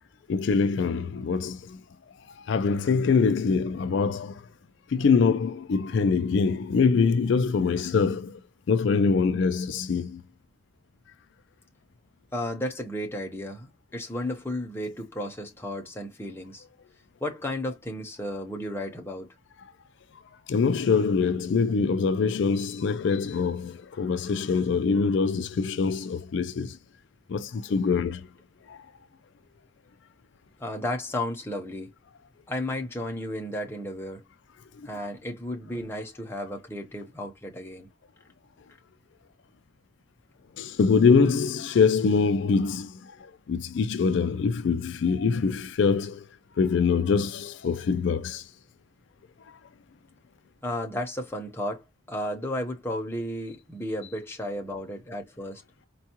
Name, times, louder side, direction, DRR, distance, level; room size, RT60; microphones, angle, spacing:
voice 1, 0.3-1.6 2.5-4.4 4.9-8.3 8.7-10.2 20.5-26.7 27.3-28.2 40.6-42.9 43.5-46.2 46.6-48.4, left 5 dB, 60° left, 0.3 m, -24 dB
voice 2, 12.3-16.6 17.2-19.3 30.6-31.9 32.5-34.2 34.8-37.9 50.6-55.6, left 1 dB, 10° left, 0.8 m, -33 dB
4.5 x 2.2 x 2.8 m
head